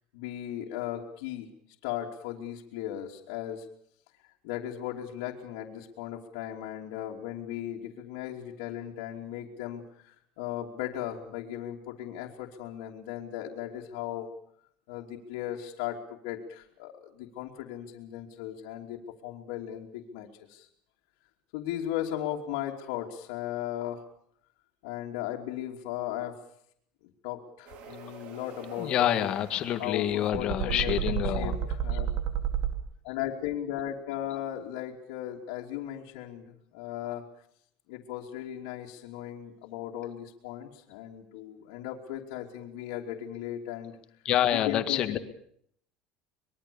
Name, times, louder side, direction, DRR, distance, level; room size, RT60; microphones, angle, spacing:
voice 1, 0.1-1.5 1.8-3.7 4.4-14.3 14.9-20.7 21.5-24.0 24.8-26.4 27.2-29.2 29.8-32.2 33.0-37.2 37.9-44.0 44.5-45.2, left 11 dB, 80° left, -2 dB, 2.9 m, -37 dB
sound 1, 27.7-32.7, right 9 dB, 45° right, 2.9 m, -33 dB
voice 2, 28.8-31.6 44.3-45.2, left 11 dB, 35° left, 9 dB, 1.9 m, -27 dB
25.0 x 22.0 x 7.1 m, 0.66 s
cardioid pair, 170°, 3 cm